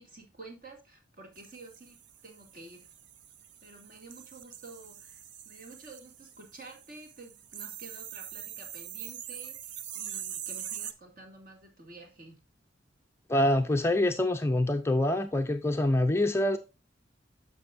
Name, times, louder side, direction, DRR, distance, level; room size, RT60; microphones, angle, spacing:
voice 1, 0.0-2.9 3.6-12.4, right 2 dB, 45° right, 2.4 m, -50 dB
sound 1, 1.4-10.9, right 10 dB, 70° right, 0.6 m, -43 dB
voice 2, 13.3-16.6, left 1 dB, 15° left, 0.4 m, -25 dB
9.9 x 6.7 x 2.5 m
head